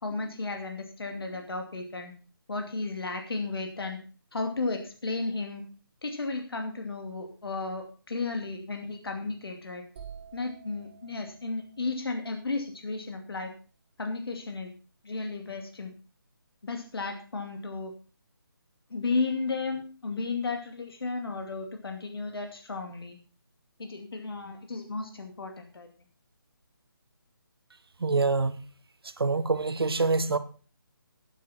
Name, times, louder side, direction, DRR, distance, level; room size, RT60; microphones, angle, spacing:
voice 1, 0.0-2.1 2.5-4.0 4.3-5.6 6.0-9.8 10.3-13.5 14.0-14.7 15.0-15.9 16.6-17.9 18.9-23.2 23.8-25.9, left 3 dB, 80° left, 2.5 m, -34 dB
sound 1, 10.0-13.7, right 7 dB, 30° right, 2.3 m, -51 dB
voice 2, 28.0-28.6 29.0-30.4, right 3 dB, 85° right, 1.3 m, -26 dB
12.0 x 10.0 x 4.4 m
hypercardioid pair, 165°, 12 cm